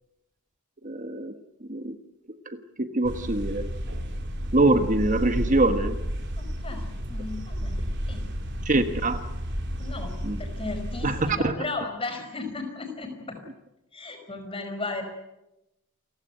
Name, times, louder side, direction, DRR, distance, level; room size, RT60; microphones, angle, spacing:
voice 1, 0.8-1.3 1.7-2.0 2.5-3.7 4.5-6.0 8.6-9.2 10.2-10.4 11.0-11.6, right 2 dB, 35° right, 9 dB, 1.3 m, -24 dB
sound 1, 3.1-11.3, equal, 50° right, 3.8 m, -32 dB
voice 2, 6.4-6.8 7.1-8.3 9.8-13.4 13.9-15.0, left 3 dB, 25° left, 5 dB, 5.1 m, -35 dB
28.5 x 16.0 x 10.0 m, 0.93 s
head